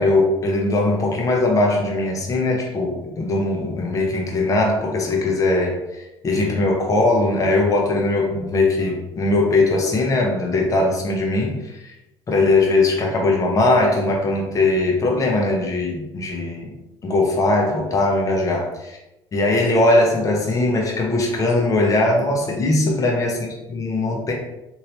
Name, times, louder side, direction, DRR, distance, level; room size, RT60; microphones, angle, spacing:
voice 1, 0.0-11.9 12.3-16.7 17.0-19.0 19.3-24.3, left 2 dB, 30° left, 0 dB, 0.8 m, -20 dB
3.1 x 2.8 x 2.8 m, 0.92 s
supercardioid pair, 90°, 10 cm